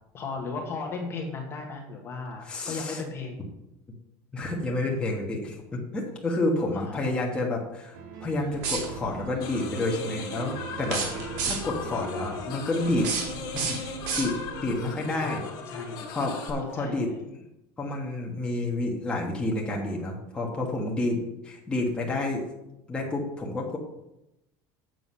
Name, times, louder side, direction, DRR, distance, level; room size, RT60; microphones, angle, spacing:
voice 1, 0.1-3.4 6.6-7.4 14.8-16.1 16.7-17.2, left 4 dB, 25° left, 1 dB, 1.4 m, -37 dB
voice 2, 2.4-3.0 4.3-11.0 11.4-13.1 13.5-13.9 14.2-15.5 16.1-17.1 17.8-22.5 22.9-23.8, left 2 dB, 10° left, -2 dB, 1.4 m, -29 dB
sound 1, 7.9-13.8, right 6 dB, 90° right, 2.2 m, -42 dB
sound 2, 8.5-9.2 10.8-11.9 12.8-14.7, right 5 dB, 70° right, 2.5 m, -32 dB
sound 3, 9.4-16.5, left 4 dB, 45° left, 1.9 m, -38 dB
7.8 x 7.0 x 5.6 m, 0.90 s
cardioid pair, 165°, 10 cm